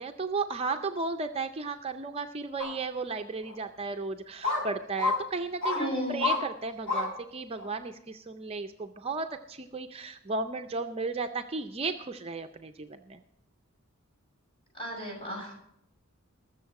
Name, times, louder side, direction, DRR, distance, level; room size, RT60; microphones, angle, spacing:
voice 1, 0.0-13.2, right 3 dB, 25° right, 7 dB, 0.5 m, -34 dB
sound 1, 2.6-2.7 3.4-3.5 4.4-4.6 5.0-5.2 5.6-5.8 6.2-6.4 6.9-7.1 7.6-7.7, left 3 dB, 65° left, 5.7 m, -28 dB
voice 2, 5.7-6.3 14.7-15.5, equal, 25° left, -2 dB, 6.3 m, -34 dB
21.0 x 7.1 x 4.7 m, 0.74 s
head